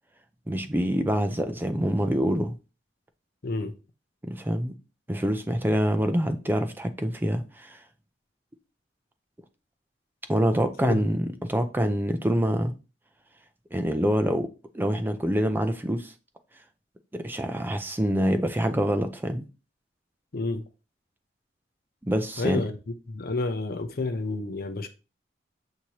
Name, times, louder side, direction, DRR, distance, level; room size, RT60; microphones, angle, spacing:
voice 1, 0.5-2.6 4.3-4.7 5.1-7.8 10.3-12.7 13.7-14.5 14.7-16.1 17.1-19.5 22.0-22.6, equal, 10° right, 0.4 m, -26 dB
voice 2, 3.4-3.7 10.8-11.0 20.3-20.6 22.4-22.7 23.1-24.9, left 3 dB, 55° left, 0.6 m, -29 dB
6.2 x 2.8 x 2.9 m
head